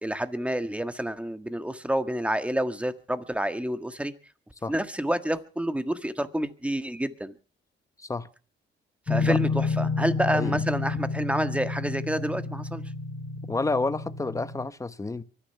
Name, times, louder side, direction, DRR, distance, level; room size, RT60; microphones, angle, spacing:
voice 1, 0.0-4.1 4.7-7.3 9.1-12.8, right 1 dB, 5° right, 1.6 m, -29 dB
sound 1, 9.1-14.7, left 4 dB, 35° left, 3.3 m, -30 dB
voice 2, 10.3-10.6 13.5-15.2, left 3 dB, 15° left, 1.1 m, -29 dB
24.0 x 10.0 x 5.8 m
cardioid pair, 90°, 20 cm